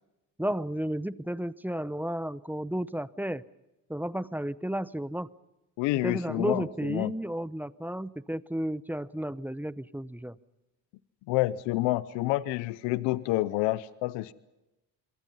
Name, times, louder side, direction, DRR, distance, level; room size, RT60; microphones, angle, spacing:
voice 1, 0.4-3.4 3.9-5.3 6.0-10.4, right 1 dB, 5° right, 16 dB, 0.8 m, -32 dB
voice 2, 5.8-7.1 11.3-14.3, left 17 dB, 85° left, 18 dB, 0.7 m, -28 dB
27.0 x 23.0 x 5.6 m, 0.98 s
supercardioid pair, 60°, 43 cm